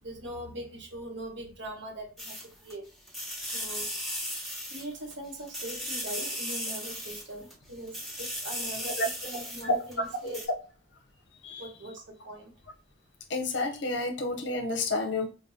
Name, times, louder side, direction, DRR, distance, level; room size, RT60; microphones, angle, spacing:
voice 1, 0.0-2.3 2.6-2.9 3.4-4.0 4.7-10.5 11.6-12.5, right 1 dB, 65° right, 1.0 m, -41 dB
sound 1, 2.2-2.7 3.1-5.1 5.5-7.5 7.9-9.9 10.3-10.4, equal, ahead, 1.0 m, -36 dB
voice 2, 13.3-15.3, left 2 dB, 65° left, 0.6 m, -29 dB
4.7 x 2.2 x 2.6 m
head